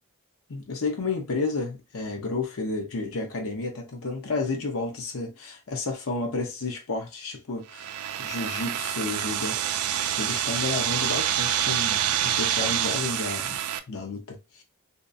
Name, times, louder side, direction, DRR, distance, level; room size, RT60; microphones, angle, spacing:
voice 1, 0.5-9.6 10.1-13.6 13.9-14.6, left 3 dB, 65° left, 0.7 m, -31 dB
sound 1, 7.7-13.8, right 11 dB, 80° right, 0.3 m, -27 dB
2.7 x 2.3 x 2.5 m
head